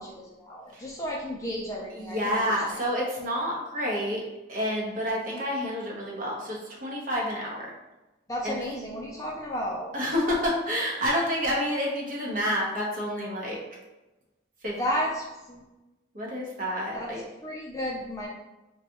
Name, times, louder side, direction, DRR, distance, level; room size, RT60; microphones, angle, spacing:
voice 1, 0.0-2.8 8.3-9.9 14.8-15.6 16.9-17.1 17.4-18.3, equal, 15° left, -4 dB, 0.4 m, -33 dB
voice 2, 1.9-4.2 4.5-7.7 8.4-8.5 9.9-13.6 14.6-14.8 16.1-17.2, equal, 45° right, -3 dB, 0.8 m, -29 dB
3.9 x 2.3 x 2.8 m, 1.0 s
head